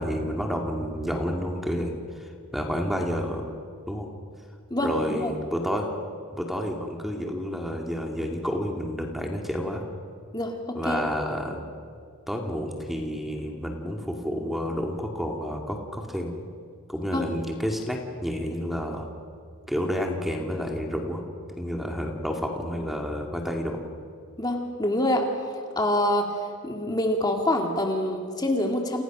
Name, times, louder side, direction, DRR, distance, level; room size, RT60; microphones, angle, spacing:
voice 1, 0.0-3.5 3.9-4.1 4.8-5.9 6.3-9.8 10.7-11.6 12.3-16.3 16.9-19.1 19.7-21.2 21.6-23.8, equal, ahead, 2 dB, 2.3 m, -30 dB
voice 2, 4.7-5.3 10.3-11.0 17.1-17.3 24.4-29.0, left 1 dB, 20° left, 2 dB, 2.1 m, -26 dB
30.0 x 29.0 x 6.1 m, 2.3 s
head